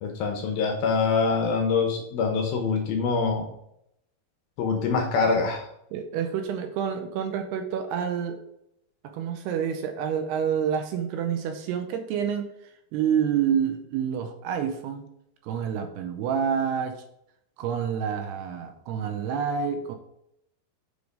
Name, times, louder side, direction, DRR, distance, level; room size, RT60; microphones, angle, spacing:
voice 1, 0.0-3.5 4.6-5.7, left 4 dB, 75° left, 3 dB, 2.3 m, -24 dB
voice 2, 5.9-8.4 9.1-12.5 12.9-15.1 15.4-17.0 17.6-20.0, right 8 dB, 80° right, 6 dB, 2.5 m, -28 dB
6.9 x 4.7 x 5.1 m, 0.77 s
omnidirectional pair, 5.0 m